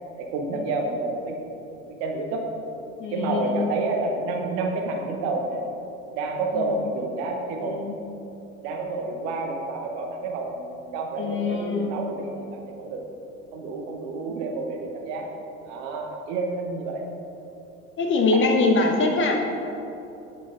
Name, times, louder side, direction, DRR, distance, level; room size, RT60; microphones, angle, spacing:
voice 1, 0.2-1.4 2.0-2.4 3.1-5.7 6.1-7.7 8.6-13.0 13.5-15.3 15.6-17.0, right 3 dB, 50° right, 2 dB, 1.1 m, -29 dB
voice 2, 3.0-3.7 6.5-6.8 7.6-7.9 11.2-12.0 18.0-19.4, left 3 dB, 30° left, 2 dB, 0.8 m, -23 dB
8.7 x 5.1 x 3.8 m, 2.9 s
figure-of-eight pair, 70°, 43 cm